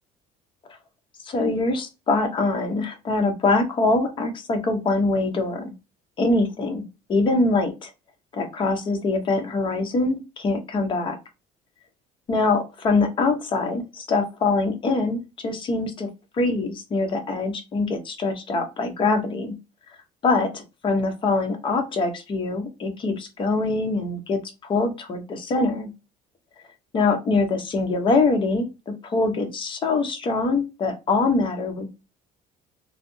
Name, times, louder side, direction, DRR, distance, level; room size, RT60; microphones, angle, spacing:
voice 1, 1.2-5.7 6.2-7.9 8.3-11.2 12.3-16.1 16.3-19.5 20.2-25.9 26.9-31.9, left 3 dB, 30° left, 5 dB, 0.7 m, -24 dB
3.2 x 2.7 x 2.6 m, 0.27 s
cardioid pair, 155°, 16 cm